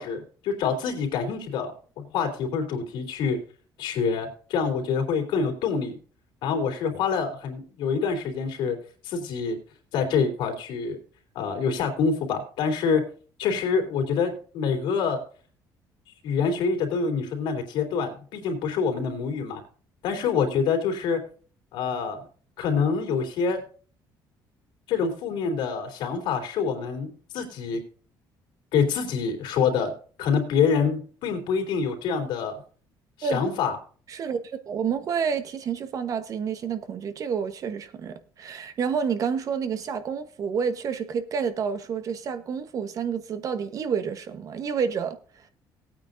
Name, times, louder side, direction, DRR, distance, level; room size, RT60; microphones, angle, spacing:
voice 1, 0.0-3.4 3.8-6.0 6.4-8.8 9.0-9.6 9.9-11.0 11.3-13.0 13.4-15.2 16.2-19.6 20.0-21.2 21.7-22.2 22.6-23.6 24.9-27.8 28.7-29.9 30.2-32.6 33.2-33.8, left 5 dB, 80° left, 3.4 m, -26 dB
voice 2, 34.1-45.2, right 6 dB, 45° right, 1.1 m, -29 dB
18.5 x 9.0 x 2.6 m
cardioid pair, 140°, 8 cm